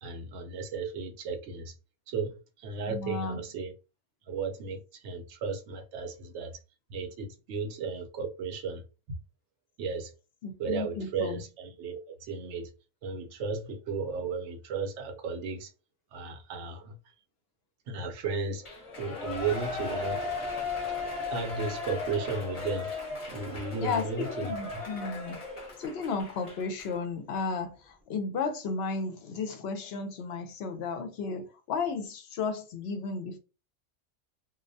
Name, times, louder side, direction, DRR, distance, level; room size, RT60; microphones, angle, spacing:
voice 1, 0.0-1.7 2.1-3.7 4.3-6.5 6.9-9.2 9.8-10.1 10.6-12.7 13.0-15.7 16.1-17.0 17.9-18.6 19.0-20.2 21.2-22.9 23.3-24.8, right 4 dB, 75° right, 0.9 m, -35 dB
voice 2, 2.9-3.4 10.4-11.4 23.8-24.0 24.4-25.4 25.8-33.4, left 4 dB, 65° left, 0.7 m, -33 dB
Shout / Cheering, 18.6-26.9 27.3-27.4, left 3 dB, 30° left, 0.7 m, -36 dB
2.2 x 2.1 x 2.6 m
omnidirectional pair, 1.3 m